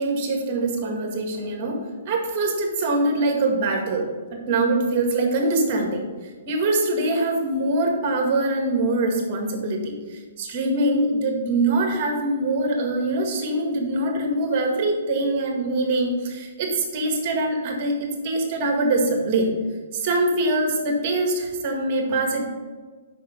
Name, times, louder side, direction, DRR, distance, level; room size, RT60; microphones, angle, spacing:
voice 1, 0.0-6.1 6.5-19.5 19.9-22.4, right 2 dB, 40° right, 2 dB, 1.8 m, -23 dB
6.3 x 5.8 x 5.3 m, 1.4 s
hypercardioid pair, 125°, 0 cm